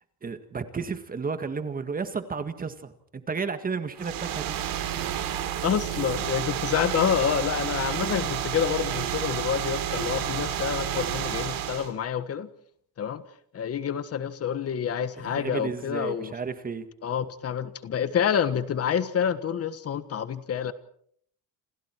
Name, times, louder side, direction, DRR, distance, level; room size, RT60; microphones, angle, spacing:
voice 1, 0.2-4.6 15.2-16.9, right 5 dB, 25° right, 10 dB, 1.8 m, -32 dB
sound 1, 4.0-11.9, right 10 dB, 65° right, 4.0 m, -30 dB
voice 2, 5.6-12.5 13.0-13.2 13.5-16.3 17.0-20.7, left 8 dB, 40° left, 12 dB, 1.5 m, -28 dB
29.0 x 28.0 x 4.6 m, 0.64 s
cardioid pair, 150°, 36 cm